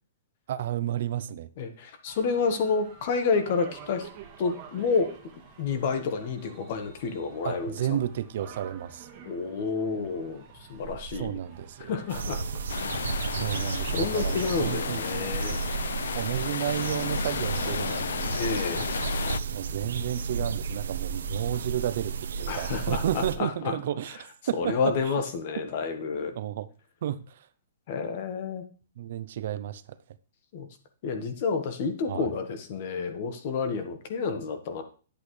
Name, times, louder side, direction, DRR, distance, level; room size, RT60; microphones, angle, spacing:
voice 1, 0.5-1.5 7.4-9.1 11.1-11.9 13.3-15.4 16.1-18.3 19.5-24.2 24.5-25.1 26.3-26.7 27.0-27.5 29.0-30.0 32.1-32.3, right 11 dB, 50° right, 0.5 m, -32 dB
voice 2, 1.6-4.1 4.4-5.1 5.6-7.8 9.2-11.3 11.8-12.4 13.9-15.6 18.3-18.9 22.5-23.8 24.6-26.3 27.9-28.6 30.5-30.7 31.0-34.8, left 5 dB, 40° left, 1.3 m, -29 dB
sound 1, 2.1-16.2, right 7 dB, 25° right, 1.5 m, -49 dB
sound 2, 12.1-23.3, right 5 dB, 90° right, 1.1 m, -33 dB
sound 3, 12.7-19.4, left 8 dB, 75° left, 0.3 m, -33 dB
10.5 x 8.5 x 3.2 m
hypercardioid pair, 175°, 0 cm